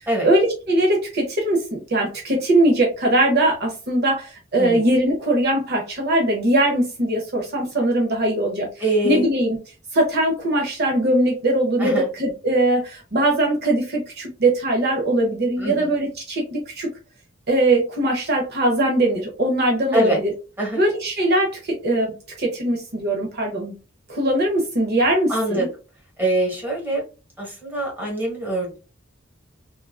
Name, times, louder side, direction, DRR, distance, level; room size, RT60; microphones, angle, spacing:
voice 1, 0.2-8.7 9.0-9.6 9.9-16.9 17.5-20.3 20.7-23.7 24.1-25.7, right 1 dB, 55° right, 0 dB, 0.8 m, -21 dB
voice 2, 8.8-9.3 11.8-12.1 15.6-15.9 19.9-20.2 20.6-20.8 25.3-25.7 26.2-27.0 27.4-28.8, right 1 dB, 10° right, -3 dB, 1.3 m, -23 dB
3.7 x 2.4 x 2.3 m, 0.32 s
head